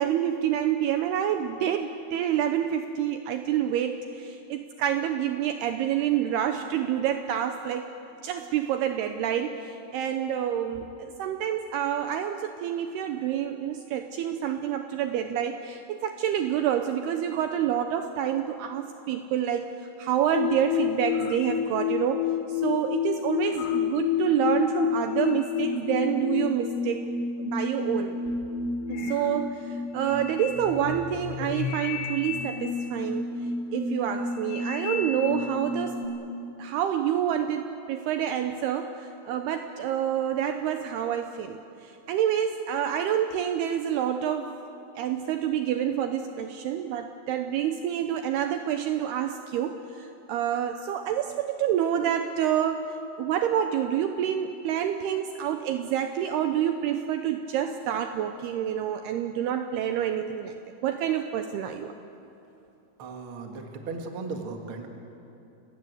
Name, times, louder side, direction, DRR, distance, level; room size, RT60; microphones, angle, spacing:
voice 1, 0.0-7.9 8.2-19.7 20.0-22.2 22.5-27.1 27.4-28.2 28.9-33.3 33.7-36.0 36.6-44.5 45.0-52.9 53.2-60.5 60.8-61.9, right 10 dB, 80° right, 7 dB, 2.5 m, -28 dB
sound 1, 20.3-36.1, left 7 dB, 75° left, 3.2 m, -30 dB
voice 2, 63.0-64.9, right 3 dB, 45° right, 4 dB, 1.9 m, -36 dB
30.0 x 17.0 x 8.1 m, 2.8 s
omnidirectional pair, 5.2 m